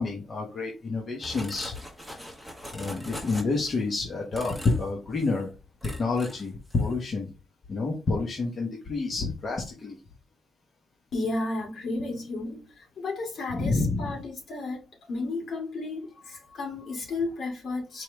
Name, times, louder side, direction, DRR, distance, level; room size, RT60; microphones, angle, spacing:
voice 1, 0.0-1.7 2.7-5.5 5.8-7.3 7.7-10.0 13.5-14.2, left 3 dB, 45° left, 1.2 m, -28 dB
sound 1, 1.2-3.8 4.3-4.9 5.2-5.4 5.8-6.5 6.7-6.9, equal, 10° left, 1.6 m, -41 dB
voice 2, 11.1-18.0, left 2 dB, 65° left, 2.0 m, -33 dB
4.7 x 3.1 x 3.4 m
cardioid pair, 90°, 0 cm